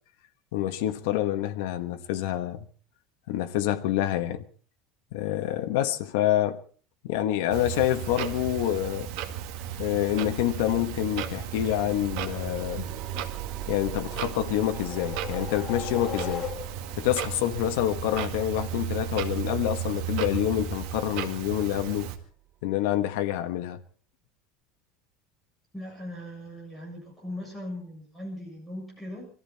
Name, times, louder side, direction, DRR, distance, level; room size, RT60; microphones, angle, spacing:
voice 1, 0.5-2.7 3.3-4.4 5.1-6.6 7.0-9.1 9.8-12.9 13.7-16.5 16.9-22.1 22.6-23.8, left 13 dB, 75° left, 1.4 m, -27 dB
Clock, 7.5-22.2, right 10 dB, 60° right, 2.1 m, -35 dB
sound 1, 11.6-22.7, right 13 dB, 35° right, 0.8 m, -44 dB
sound 2, 14.0-17.0, left 8 dB, 30° left, 1.7 m, -38 dB
voice 2, 25.7-29.3, left 1 dB, ahead, 7.3 m, -39 dB
24.0 x 14.5 x 4.2 m
cardioid pair, 175°, 0 cm